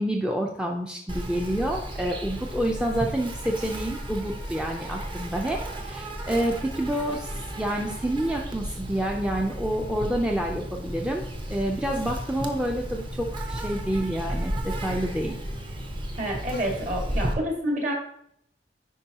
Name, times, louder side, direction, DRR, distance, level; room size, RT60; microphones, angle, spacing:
voice 1, 0.0-15.3, right 1 dB, 5° right, 0 dB, 0.5 m, -28 dB
Insect, 1.1-17.3, equal, 30° right, 0.9 m, -34 dB
voice 2, 16.2-17.9, equal, 45° right, 0 dB, 2.0 m, -28 dB
10.0 x 4.5 x 2.9 m, 0.72 s
head